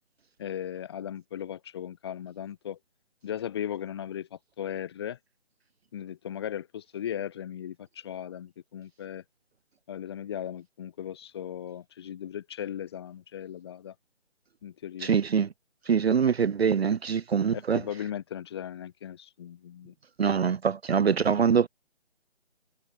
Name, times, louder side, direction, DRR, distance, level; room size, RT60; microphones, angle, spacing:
voice 1, 0.4-2.8 3.2-5.2 5.9-9.2 9.9-13.9 14.6-15.1 17.5-19.9 21.1-21.4, left 10 dB, 20° left, 2.7 m, -37 dB
voice 2, 15.0-15.5 15.9-17.8 20.2-21.7, right 6 dB, 60° right, 0.5 m, -24 dB
figure-of-eight pair, 165°, 35 cm